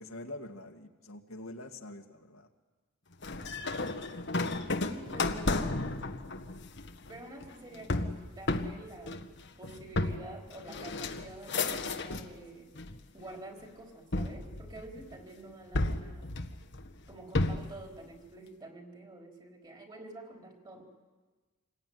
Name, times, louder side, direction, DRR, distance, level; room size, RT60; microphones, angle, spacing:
voice 1, 0.0-2.5, left 1 dB, 85° left, 3 dB, 2.3 m, -45 dB
sound 1, 3.2-12.4 12.8-13.4 14.1-15.2 15.7-17.8, left 2 dB, 55° left, 1.5 m, -33 dB
voice 2, 4.7-6.1 7.1-9.2 9.6-12.7 13.1-16.3 17.1-20.8, right 2 dB, 20° right, 1 dB, 4.3 m, -48 dB
27.5 x 21.0 x 9.7 m, 1.3 s
head